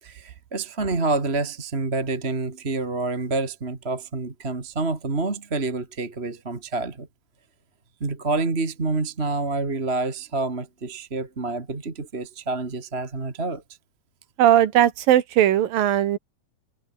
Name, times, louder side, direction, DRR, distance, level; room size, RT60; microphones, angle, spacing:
voice 1, 0.0-7.1 8.0-13.6, right 3 dB, 20° right, 2.1 m, -28 dB
voice 2, 14.4-16.2, right 11 dB, 80° right, 3.2 m, -18 dB
omnidirectional pair, 4.0 m